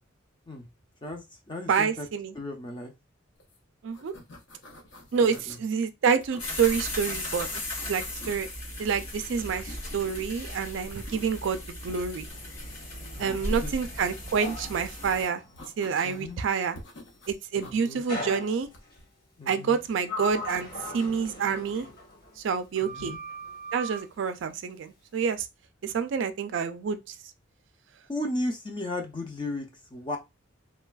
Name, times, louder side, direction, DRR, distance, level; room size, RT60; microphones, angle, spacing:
voice 1, 1.0-2.1 2.3-2.9 5.2-5.6 13.2-13.7 16.0-16.4 17.6-18.0 19.4-19.8 22.8-23.2 28.1-30.2, left 1 dB, 25° left, 0.5 m, -35 dB
voice 2, 1.7-2.3 3.8-4.1 5.1-8.5 8.8-12.3 13.2-15.4 15.8-16.8 17.3-18.7 19.5-21.9 22.4-23.1 23.7-25.5 25.8-27.1, right 6 dB, 65° right, 0.3 m, -28 dB
sound 1, 3.4-3.6 3.8-5.7 6.2-7.2 7.6-8.5 8.8-10.6 11.0-12.0 14.3-15.2 15.6-16.3 16.7-17.8 18.6-19.1, left 1 dB, 65° left, 0.7 m, -49 dB
sound 2, 6.4-15.3, left 1 dB, 90° left, 1.8 m, -37 dB
Sliding door, 12.3-16.3 18.1-19.0 19.6-22.5 22.8-24.1, left 1 dB, 50° left, 1.1 m, -40 dB
3.2 x 2.3 x 2.2 m
head